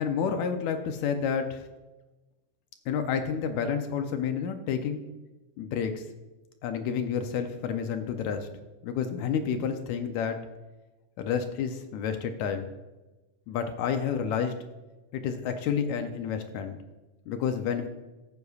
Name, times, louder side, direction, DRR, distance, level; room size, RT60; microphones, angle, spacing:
voice 1, 0.0-1.7 2.9-5.0 5.6-6.1 6.6-8.5 8.8-10.4 11.2-12.7 13.5-14.5 15.1-16.8 17.3-17.9, left 7 dB, 75° left, 7 dB, 1.7 m, -30 dB
14.0 x 8.2 x 2.4 m, 1.1 s
omnidirectional pair, 3.8 m